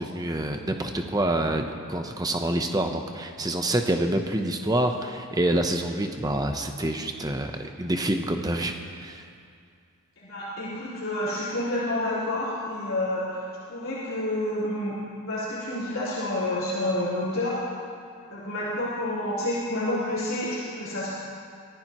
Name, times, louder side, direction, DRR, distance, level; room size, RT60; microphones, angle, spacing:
voice 1, 0.0-9.2, right 1 dB, 15° right, 5 dB, 0.8 m, -27 dB
voice 2, 10.2-17.6 18.3-21.1, left 1 dB, 65° left, -11 dB, 4.2 m, -29 dB
24.5 x 15.0 x 3.1 m, 2.3 s
head